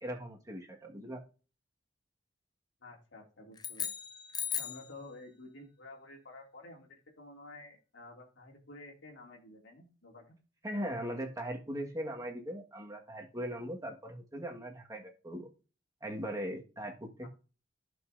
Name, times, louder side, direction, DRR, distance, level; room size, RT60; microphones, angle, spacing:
voice 1, 0.0-1.2 10.6-15.5 16.0-17.3, equal, 20° right, 1 dB, 1.6 m, -39 dB
voice 2, 2.8-3.9 4.6-10.4 17.2-17.3, left 2 dB, 80° left, 0 dB, 2.5 m, -51 dB
sound 1, 3.6-4.9, left 8 dB, 20° left, 0.6 m, -37 dB
15.0 x 5.5 x 2.6 m, 0.35 s
head